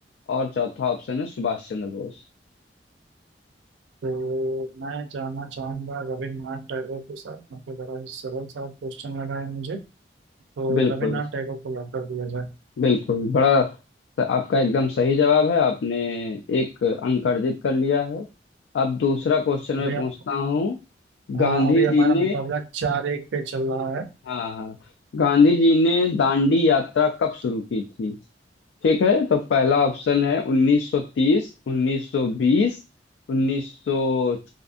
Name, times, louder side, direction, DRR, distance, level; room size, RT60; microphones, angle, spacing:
voice 1, 0.3-2.1 10.7-11.2 12.8-13.7 14.2-18.2 18.7-20.8 21.3-22.4 24.3-24.8 25.1-28.2 28.8-32.8 33.3-34.4, left 4 dB, 85° left, 4 dB, 0.3 m, -22 dB
voice 2, 4.0-9.8 10.6-12.5 19.8-20.1 21.3-24.1, right 4 dB, 85° right, 8 dB, 0.4 m, -29 dB
2.5 x 2.3 x 2.5 m, 0.29 s
head